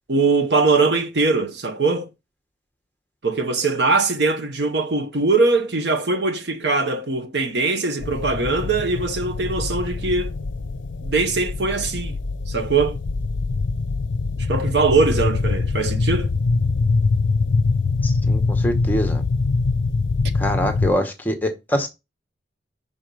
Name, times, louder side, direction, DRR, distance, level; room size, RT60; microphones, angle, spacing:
voice 1, 0.1-2.1 3.2-10.4 11.0-12.2 12.5-13.0 14.5-16.3, right 3 dB, 65° right, 0.8 m, -21 dB
sound 1, 8.0-20.9, left 3 dB, 80° left, 0.5 m, -23 dB
voice 2, 18.0-19.2 20.3-21.9, equal, 10° left, 0.9 m, -24 dB
5.5 x 4.5 x 5.3 m
head